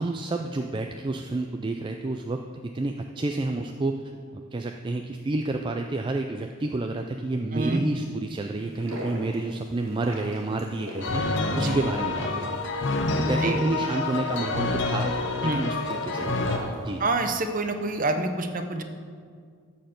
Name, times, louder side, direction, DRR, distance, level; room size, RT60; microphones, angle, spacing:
voice 1, 0.0-3.9 4.3-11.2 11.6-12.7 13.2-15.1 15.4-16.4 16.8-17.0, right 2 dB, 20° right, 4 dB, 0.3 m, -30 dB
voice 2, 7.5-7.8 11.6-11.8 13.4-13.6 15.4-15.6 17.0-18.8, right 2 dB, 40° right, 7 dB, 0.7 m, -27 dB
sound 1, 8.6-17.4, equal, 60° right, 2.4 m, -40 dB
sound 2, 11.0-16.6, left 2 dB, 55° left, 0.8 m, -27 dB
13.0 x 4.4 x 7.8 m, 2.1 s
head